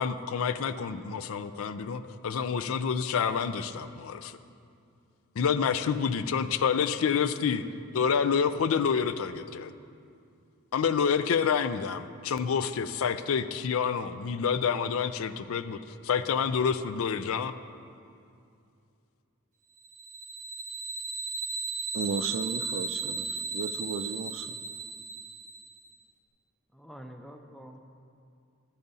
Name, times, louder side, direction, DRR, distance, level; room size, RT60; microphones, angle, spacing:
voice 1, 0.0-4.4 5.4-7.6 7.9-9.7 10.7-15.8 16.0-17.5, left 6 dB, 70° left, 0.4 m, -28 dB
sound 1, 19.8-25.8, right 4 dB, 35° right, 1.0 m, -36 dB
voice 2, 21.9-24.6, right 5 dB, 60° right, 0.3 m, -34 dB
voice 3, 26.7-27.8, equal, ahead, 0.5 m, -46 dB
11.5 x 10.5 x 2.7 m
head